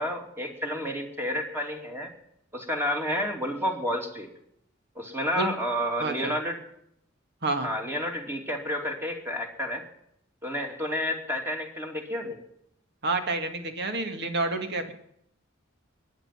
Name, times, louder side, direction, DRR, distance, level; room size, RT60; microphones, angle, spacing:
voice 1, 0.0-2.1 2.5-4.3 4.9-6.6 7.6-9.8 10.4-12.4, equal, 10° right, 2 dB, 2.8 m, -30 dB
voice 2, 6.0-6.4 7.4-7.7 13.0-14.9, right 3 dB, 55° right, 6 dB, 2.2 m, -29 dB
21.5 x 9.8 x 6.0 m, 0.73 s
head